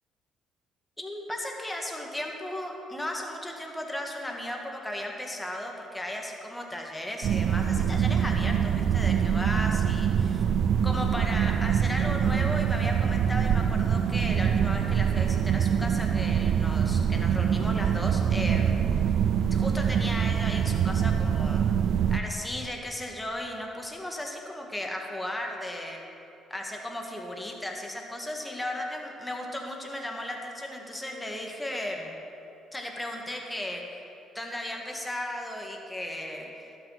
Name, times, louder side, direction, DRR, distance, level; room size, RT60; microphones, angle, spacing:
voice 1, 1.0-10.4 10.8-18.8 19.5-21.6 22.1-26.0 26.5-32.2 32.7-33.8 34.3-36.7, left 1 dB, 10° left, 1 dB, 1.8 m, -35 dB
sound 1, 7.2-22.2, right 8 dB, 65° right, 0.4 m, -25 dB
12.0 x 6.2 x 5.7 m, 2.8 s
hypercardioid pair, 55°, 0 cm